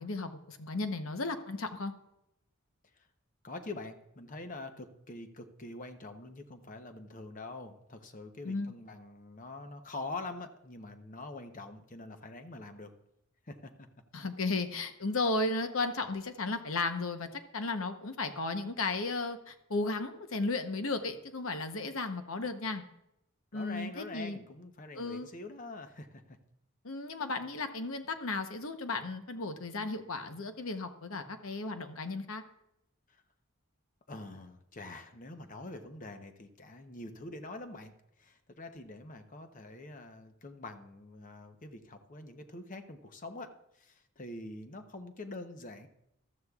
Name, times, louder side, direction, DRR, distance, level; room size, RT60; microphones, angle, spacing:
voice 1, 0.0-1.9 8.4-8.7 14.1-17.3 17.5-22.8 23.5-24.4 25.0-25.3 26.8-32.4, left 3 dB, 70° left, 8 dB, 0.9 m, -34 dB
voice 2, 3.4-12.9 13.5-13.9 23.5-26.4 34.1-37.9 38.2-45.9, left 2 dB, 35° left, 7 dB, 0.8 m, -45 dB
14.5 x 12.5 x 2.4 m, 0.81 s
head